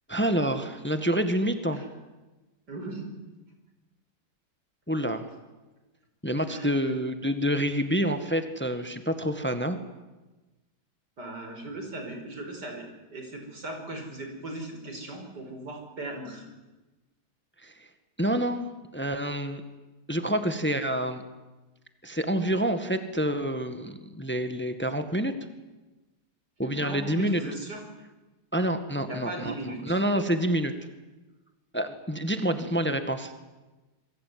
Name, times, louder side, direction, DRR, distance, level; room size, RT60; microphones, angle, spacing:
voice 1, 0.1-1.8 4.9-5.2 6.2-9.8 17.6-17.7 18.2-19.6 20.1-21.2 22.0-25.3 26.6-27.4 28.5-29.5 29.8-30.7 31.7-33.4, equal, 5° left, 8 dB, 1.7 m, -27 dB
voice 2, 2.7-3.1 6.5-6.9 11.2-16.4 26.6-27.9 29.0-30.0 32.5-32.7, right 2 dB, 80° right, 3 dB, 5.9 m, -38 dB
28.0 x 22.0 x 9.6 m, 1.1 s
omnidirectional pair, 1.8 m